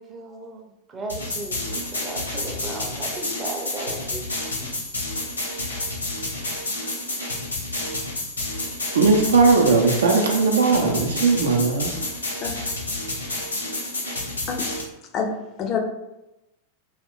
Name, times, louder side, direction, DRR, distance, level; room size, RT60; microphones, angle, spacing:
voice 1, 0.0-4.7, right 2 dB, 20° right, 1 dB, 0.6 m, -36 dB
sound 1, 1.1-14.8, left 2 dB, 75° left, 0.8 m, -30 dB
voice 2, 8.9-11.9, right 4 dB, 65° right, 1 dB, 0.5 m, -18 dB
voice 3, 15.1-15.8, left 6 dB, 35° left, 3 dB, 0.5 m, -27 dB
2.4 x 2.3 x 3.6 m, 0.93 s
figure-of-eight pair, 90°, 0 cm